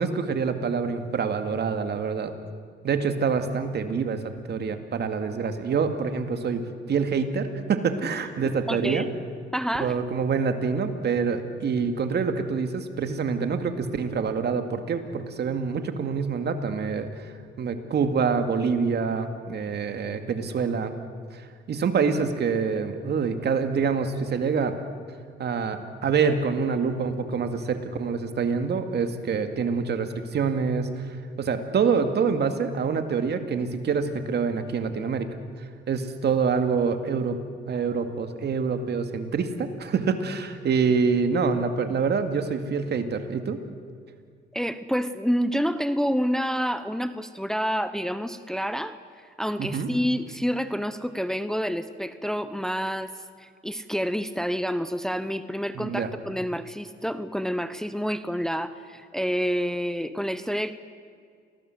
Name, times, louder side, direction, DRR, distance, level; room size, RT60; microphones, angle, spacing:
voice 1, 0.0-2.3 2.8-6.6 6.9-9.1 9.8-17.1 17.6-20.9 21.3-21.4 21.7-24.7 25.4-30.9 31.4-35.3 35.9-37.4 37.7-43.6 49.6-49.9 55.8-56.1, right 5 dB, 55° right, 7 dB, 2.4 m, -26 dB
voice 2, 8.7-9.1 9.5-10.0 44.5-60.7, equal, 5° left, 11 dB, 0.9 m, -28 dB
27.5 x 19.5 x 8.0 m, 2.2 s
cardioid pair, 90°, 20 cm